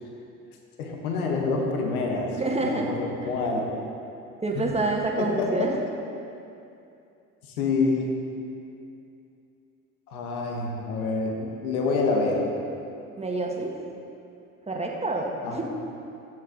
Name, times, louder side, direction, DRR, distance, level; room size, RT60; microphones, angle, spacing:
voice 1, 0.8-3.7 4.5-4.8 5.2-5.7 7.5-8.2 10.1-12.5 15.4-15.6, left 3 dB, 80° left, 1 dB, 1.5 m, -27 dB
voice 2, 2.3-3.4 4.4-5.7 13.2-13.7 14.7-15.6, right 2 dB, 15° right, 0 dB, 1.7 m, -28 dB
15.0 x 7.6 x 3.9 m, 2.7 s
hypercardioid pair, 70°, 43 cm